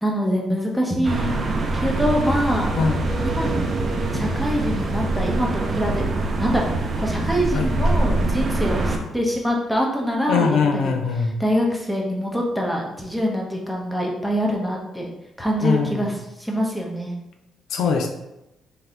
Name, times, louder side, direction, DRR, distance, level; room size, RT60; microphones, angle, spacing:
voice 1, 0.0-1.4 1.7-2.8 3.2-3.5 4.1-6.0 6.4-15.1 15.4-17.1, equal, 5° left, -1 dB, 0.9 m, -24 dB
sound 1, 1.0-9.0, right 2 dB, 50° right, 0.6 m, -24 dB
voice 2, 10.3-11.3 15.6-16.0 17.7-18.1, left 5 dB, 80° left, 4 dB, 0.5 m, -21 dB
3.9 x 2.8 x 3.7 m, 0.92 s
cardioid pair, 90°, 0 cm